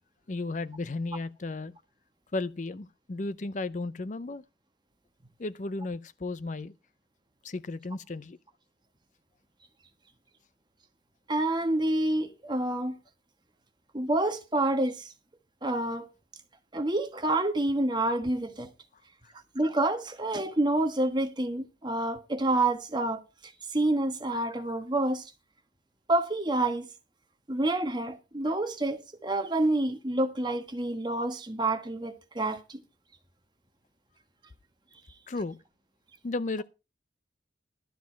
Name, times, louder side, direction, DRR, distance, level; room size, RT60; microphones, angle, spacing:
voice 1, 0.3-1.7 2.3-4.4 5.4-6.7 7.4-8.4 19.2-19.3 35.3-35.6 36.2-36.6, left 3 dB, 45° left, 0.5 m, -34 dB
voice 2, 11.3-13.0 13.9-15.1 15.6-16.1 16.7-18.7 19.5-23.2 23.7-25.3 26.1-26.9 27.5-32.8, right 2 dB, 25° right, 1.3 m, -28 dB
12.5 x 7.3 x 5.6 m
head